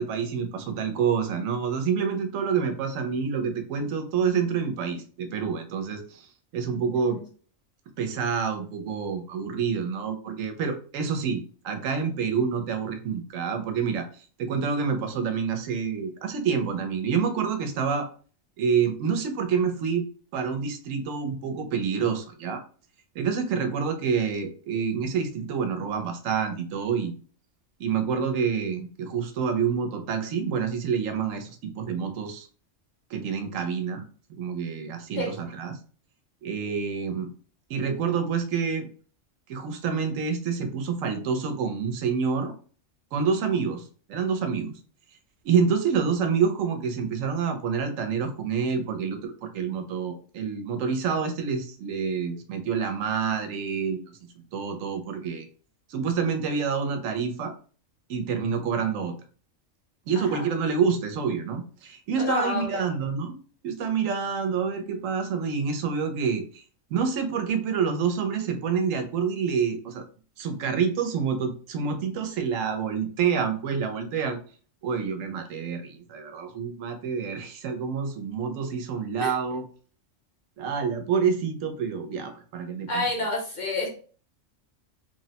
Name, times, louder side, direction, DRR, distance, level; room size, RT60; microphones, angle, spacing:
voice 1, 0.0-6.3 6.5-7.2 8.0-14.1 14.4-18.1 18.6-20.0 20.3-22.6 23.2-27.1 27.8-32.5 33.1-34.0 34.4-35.8 36.4-37.3 37.7-38.9 39.5-42.5 43.1-43.8 44.1-44.7 45.4-54.0 54.5-55.5 55.9-57.5 58.1-59.1 60.1-63.4 63.6-66.6 66.9-70.0 70.4-74.4 74.8-79.6 80.6-83.1, right 6 dB, 85° right, 6 dB, 1.0 m, -27 dB
voice 2, 6.9-7.2 35.2-35.3 60.1-60.5 62.2-62.8 79.2-79.3 82.9-83.9, left 2 dB, 45° left, -2 dB, 0.7 m, -29 dB
3.1 x 2.0 x 2.7 m, 0.41 s
omnidirectional pair, 1.3 m